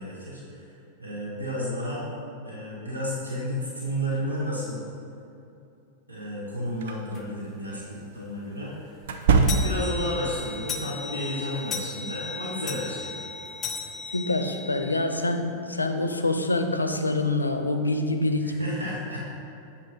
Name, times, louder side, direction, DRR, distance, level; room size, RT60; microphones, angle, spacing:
voice 1, 0.0-2.0 2.4-4.8 6.1-8.9 9.6-13.1 18.3-19.2, equal, 75° right, -6 dB, 1.1 m, -32 dB
sound 1, 6.8-7.0 9.0-10.0, right 4 dB, 55° right, 0.4 m, -22 dB
sound 2, 7.1-7.3 7.8-7.9 8.2-8.3 8.6-15.1, left 5 dB, 25° left, 0.5 m, -36 dB
voice 2, 14.1-18.8, left 2 dB, 80° left, 6 dB, 0.4 m, -26 dB
7.7 x 2.8 x 5.1 m, 2.7 s
figure-of-eight pair, 90°, 0 cm